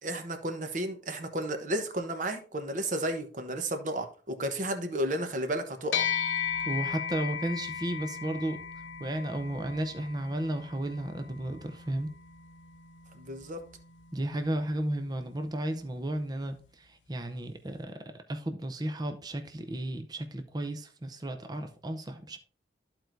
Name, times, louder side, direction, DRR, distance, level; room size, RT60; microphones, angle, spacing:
voice 1, 0.0-6.0 13.1-13.6, right 1 dB, 45° right, 1.0 m, -33 dB
sound 1, 5.9-15.5, left 8 dB, 85° left, 0.6 m, -37 dB
voice 2, 6.6-8.6 9.0-12.1 14.1-22.4, right 1 dB, 20° right, 0.6 m, -34 dB
13.5 x 4.5 x 2.6 m
head